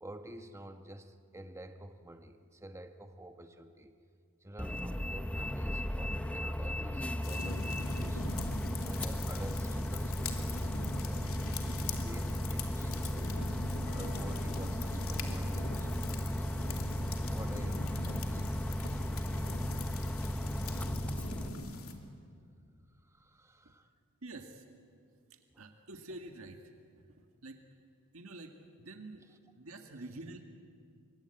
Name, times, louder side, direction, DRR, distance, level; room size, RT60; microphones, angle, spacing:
voice 1, 0.0-3.9 4.4-8.4 8.8-11.3 11.8-13.6 13.9-16.8 17.2-18.4 23.0-23.9 25.5-25.6 29.1-29.4 29.9-30.0, right 1 dB, 15° right, 7 dB, 1.1 m, -49 dB
Bus, 4.6-21.5, equal, 5° left, 0.8 m, -35 dB
sound 1, 7.2-21.9, left 3 dB, 75° left, 2.8 m, -42 dB
sound 2, 13.8-21.1, right 2 dB, 45° left, 4.0 m, -55 dB
voice 2, 24.2-24.6 25.6-26.6 27.4-27.6 28.1-29.2 29.6-30.4, right 2 dB, 70° right, 4 dB, 1.9 m, -47 dB
26.5 x 24.5 x 8.9 m, 2.2 s
head